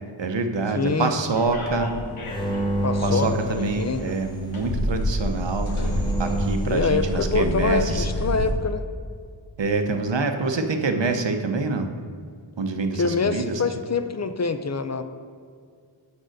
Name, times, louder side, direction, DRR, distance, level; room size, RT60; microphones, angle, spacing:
voice 1, 0.2-1.9 3.0-5.7 6.2-8.1 9.6-11.9 12.6-13.6, right 3 dB, 60° right, 6 dB, 0.8 m, -26 dB
voice 2, 0.7-1.1 2.8-4.1 6.7-8.8 13.0-15.0, left 4 dB, 35° left, 9 dB, 0.5 m, -25 dB
sound 1, 1.4-8.5, left 1 dB, 80° left, 1.0 m, -29 dB
sound 2, 2.3-4.2 5.2-6.7, right 1 dB, 10° left, 1.1 m, -29 dB
6.4 x 5.3 x 6.5 m, 2.1 s
wide cardioid pair, 45°, 49 cm